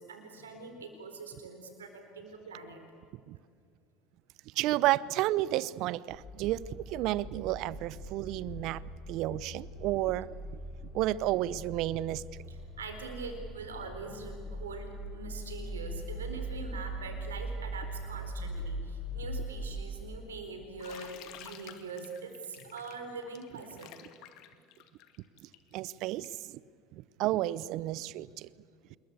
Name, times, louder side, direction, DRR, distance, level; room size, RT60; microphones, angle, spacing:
voice 1, 0.0-2.8 12.5-23.9, right 4 dB, 85° right, 6 dB, 4.1 m, -43 dB
voice 2, 4.6-8.8 9.1-10.3 10.9-12.2 25.7-26.3 26.9-28.5, right 15 dB, 60° right, 21 dB, 0.7 m, -31 dB
sound 1, 6.2-20.4, right 1 dB, 30° left, 6.2 m, -41 dB
Bathtub (filling or washing), 20.8-26.5, left 12 dB, 60° left, 2.1 m, -51 dB
26.5 x 22.0 x 8.3 m, 2.3 s
hypercardioid pair, 75°, 0 cm